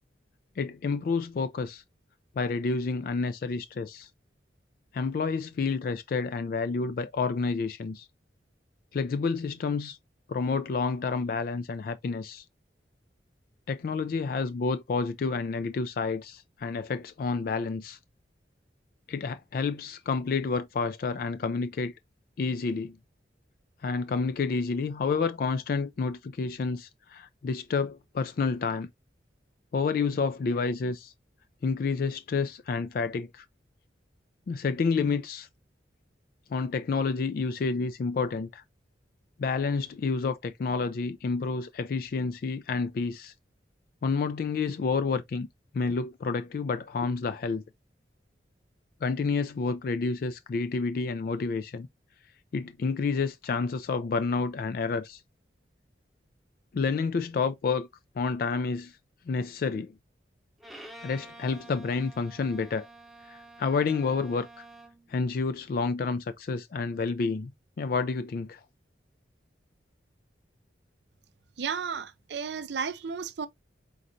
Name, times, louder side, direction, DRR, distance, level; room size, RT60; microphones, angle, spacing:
voice 1, 0.6-1.8 2.4-4.1 4.9-8.1 8.9-10.0 10.3-12.4 13.7-18.0 19.1-21.9 22.4-23.0 23.8-28.9 29.7-31.1 31.6-33.4 34.5-35.5 36.5-38.6 39.4-43.3 44.0-45.5 45.7-47.6 49.0-51.9 52.5-55.2 56.7-57.9 58.2-59.0 59.3-59.9 61.0-62.9 63.3-64.6 65.1-67.5 67.8-68.6, left 4 dB, 50° left, 0.3 m, -29 dB
Bowed string instrument, 60.6-65.1, right 1 dB, ahead, 0.7 m, -49 dB
voice 2, 71.6-73.5, right 6 dB, 70° right, 0.5 m, -33 dB
4.3 x 3.8 x 2.5 m
head